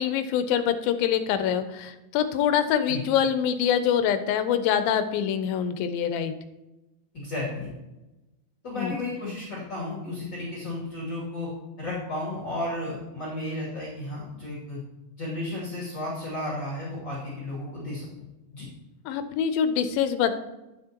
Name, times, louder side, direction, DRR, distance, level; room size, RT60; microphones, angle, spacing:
voice 1, 0.0-6.3 8.8-8.9 19.1-20.3, left 8 dB, 80° left, 10 dB, 2.4 m, -25 dB
voice 2, 7.1-7.7 8.6-11.5 11.8-14.8 15.2-18.1 18.5-18.7, left 2 dB, 30° left, -7 dB, 2.8 m, -33 dB
11.5 x 9.5 x 2.9 m, 1.0 s
omnidirectional pair, 4.3 m